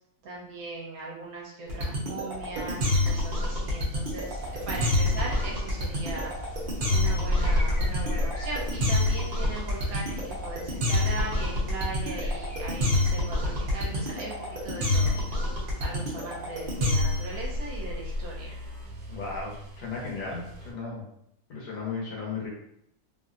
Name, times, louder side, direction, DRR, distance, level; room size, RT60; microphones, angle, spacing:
voice 1, 0.2-6.3 6.9-15.1 15.8-18.6, right 3 dB, 65° right, -3 dB, 1.1 m, -39 dB
sound 1, 1.7-17.3, left 2 dB, 45° right, 0.7 m, -27 dB
sound 2, 2.3-20.7, left 1 dB, 90° right, 1.2 m, -36 dB
sound 3, 3.0-13.2, right 1 dB, 90° left, 0.4 m, -40 dB
voice 2, 19.1-21.1 21.5-22.5, left 4 dB, 65° left, -3 dB, 1.3 m, -35 dB
3.2 x 2.6 x 2.4 m, 0.74 s
omnidirectional pair, 1.7 m